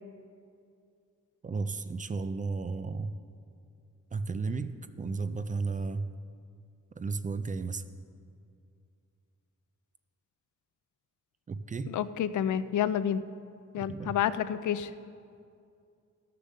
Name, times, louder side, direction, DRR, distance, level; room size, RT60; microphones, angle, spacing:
voice 1, 1.4-3.1 4.1-6.1 7.0-7.8 11.5-11.9 13.9-14.2, right 4 dB, 25° right, 11 dB, 0.4 m, -33 dB
voice 2, 11.9-13.2 13.7-14.9, left 9 dB, 85° left, 14 dB, 0.5 m, -29 dB
13.5 x 6.8 x 6.4 m, 2.4 s
wide cardioid pair, 135°, 29 cm